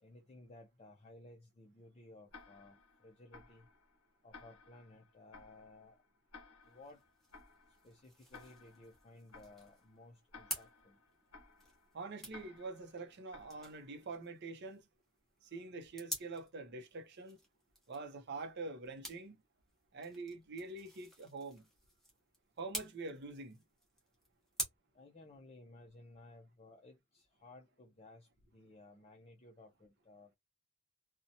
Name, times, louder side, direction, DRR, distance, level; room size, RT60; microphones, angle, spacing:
voice 1, 0.0-3.7 4.2-6.0 6.7-7.0 7.8-11.0 24.9-30.4, left 2 dB, 30° left, 0.4 m, -58 dB
Tick-tock, 2.3-14.2, left 4 dB, 80° left, 0.7 m, -59 dB
sound 1, 6.6-24.6, equal, ahead, 0.9 m, -50 dB
voice 2, 11.9-14.9 15.4-17.4 17.9-19.4 19.9-21.7 22.6-23.6, right 3 dB, 50° right, 0.6 m, -45 dB
2.7 x 2.1 x 2.6 m
head